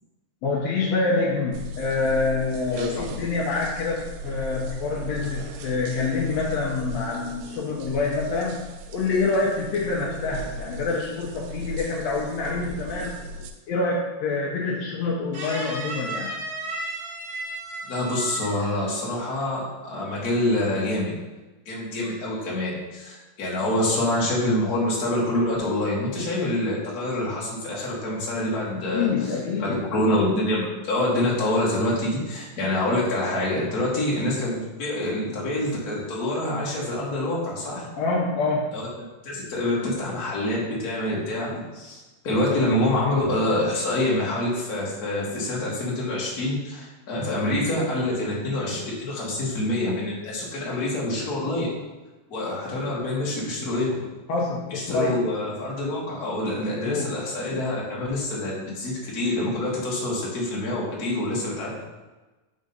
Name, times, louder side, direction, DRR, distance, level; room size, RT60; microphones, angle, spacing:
voice 1, 0.4-13.1 13.7-16.3 28.9-29.8 38.0-38.8 54.3-55.2 56.8-57.2, left 3 dB, 90° left, -2 dB, 1.4 m, -26 dB
sound 1, 1.5-13.5, equal, 80° right, 2.0 m, -37 dB
voice 2, 2.7-3.2 17.9-21.2 21.6-29.1 29.6-37.9 38.7-38.8 39.2-51.7 52.3-54.0 54.7-61.8, left 1 dB, 45° left, -5 dB, 1.2 m, -26 dB
sound 2, 15.3-19.0 19.3-19.6, right 2 dB, 50° right, 1.6 m, -34 dB
5.3 x 3.7 x 5.4 m, 1.2 s
omnidirectional pair, 3.9 m